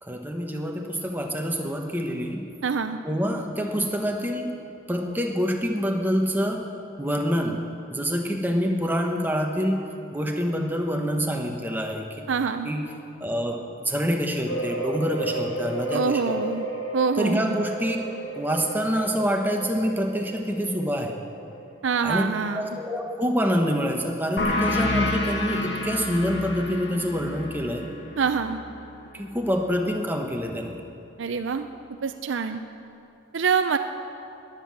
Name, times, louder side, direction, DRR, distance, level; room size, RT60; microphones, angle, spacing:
voice 1, 0.0-2.5 3.0-4.5 4.9-6.7 7.0-7.6 7.9-9.9 10.1-12.1 12.6-12.8 13.2-16.4 17.2-18.0 18.3-21.2 22.0-27.9 29.1-30.8, equal, 10° right, 2 dB, 1.0 m, -26 dB
voice 2, 2.6-3.0 12.3-12.7 15.9-16.6 16.9-17.5 21.8-22.6 28.2-28.6 31.2-31.7 32.0-32.6 33.3-33.8, right 5 dB, 75° right, 8 dB, 0.5 m, -25 dB
sound 1, 14.4-23.9 24.4-24.5 24.9-25.0, right 1 dB, 80° left, 1.7 m, -34 dB
sound 2, 24.4-29.6, left 2 dB, 65° left, 1.3 m, -29 dB
20.0 x 7.5 x 7.5 m, 2.8 s
head